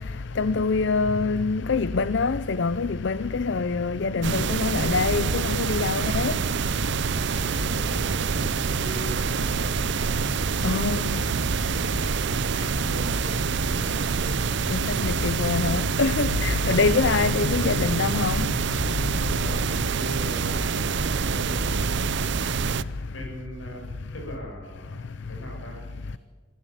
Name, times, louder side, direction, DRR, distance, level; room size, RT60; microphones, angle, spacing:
voice 1, 0.4-6.3 10.6-11.1 14.7-18.5, left 4 dB, 65° left, 0.6 m, -24 dB
sound 1, 4.2-22.8, right 5 dB, 65° right, 0.6 m, -26 dB
voice 2, 7.3-10.2 11.8-13.3 13.7-14.5 19.3-22.7 23.1-25.0 25.3-25.8, equal, 85° left, 7.7 m, -40 dB
24.0 x 15.0 x 7.4 m
head